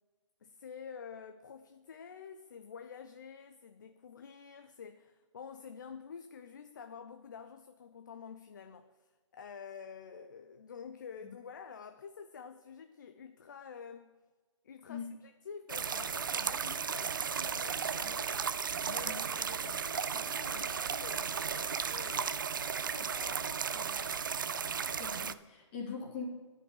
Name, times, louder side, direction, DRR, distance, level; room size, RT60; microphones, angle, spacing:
voice 1, 0.4-14.2 14.6-18.5 18.8-22.5 22.9-24.2, left 6 dB, 40° left, 8 dB, 0.5 m, -49 dB
sound 1, 15.7-25.3, right 6 dB, 40° right, 0.4 m, -35 dB
voice 2, 24.7-26.2, left 5 dB, 20° left, -2 dB, 2.4 m, -42 dB
10.5 x 5.4 x 8.4 m, 1.3 s
hypercardioid pair, 165°, 16 cm